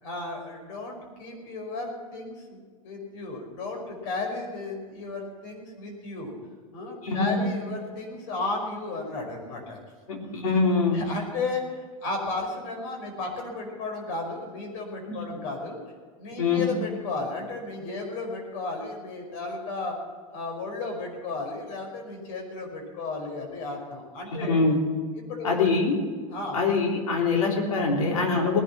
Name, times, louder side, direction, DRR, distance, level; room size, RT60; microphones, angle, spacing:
voice 1, 0.0-6.3 6.7-9.8 10.2-10.4 10.9-15.8 16.2-19.9 20.3-24.6 25.3-25.6 26.3-26.7, left 3 dB, 65° left, 2 dB, 5.3 m, -34 dB
voice 2, 7.0-7.5 10.1-11.1 15.3-15.4 16.4-16.7 24.3-24.9 25.4-26.0 26.5-28.6, left 4 dB, 90° left, 0 dB, 3.5 m, -24 dB
18.5 x 12.0 x 6.0 m, 1.5 s
hypercardioid pair, 100°, 17 cm